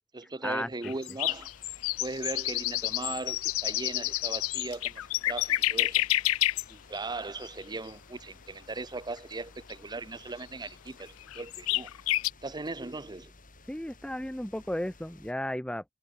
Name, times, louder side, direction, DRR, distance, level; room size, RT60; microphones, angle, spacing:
voice 1, 0.1-1.5 2.0-5.0 5.3-6.0 6.7-11.9 12.4-13.3, right 3 dB, 20° right, 0.8 m, -38 dB
sound 1, 0.8-6.6 7.0-7.1 7.4-7.5 9.7-9.8 10.4-10.5 10.7-10.8 11.3-12.3, left 17 dB, 85° left, 0.4 m, -29 dB
sound 2, 1.3-15.3, left 3 dB, 40° left, 6.3 m, -55 dB
voice 2, 13.7-15.8, left 1 dB, 5° left, 0.7 m, -34 dB
head